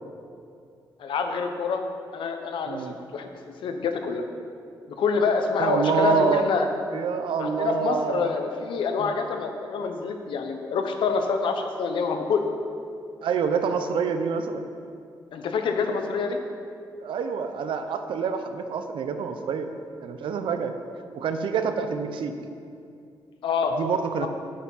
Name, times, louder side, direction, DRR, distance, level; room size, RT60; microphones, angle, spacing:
voice 1, 1.0-1.8 2.1-4.2 5.0-6.7 7.4-12.4 15.3-16.4 23.4-23.7 24.2-24.3, left 5 dB, 85° left, 5 dB, 1.0 m, -26 dB
voice 2, 5.6-6.5 6.9-8.3 9.0-9.2 13.2-14.6 17.0-19.7 20.0-20.7 21.1-22.3 23.8-24.3, right 6 dB, 85° right, 8 dB, 0.7 m, -26 dB
8.5 x 8.2 x 5.6 m, 2.5 s
wide cardioid pair, 165°, 8 cm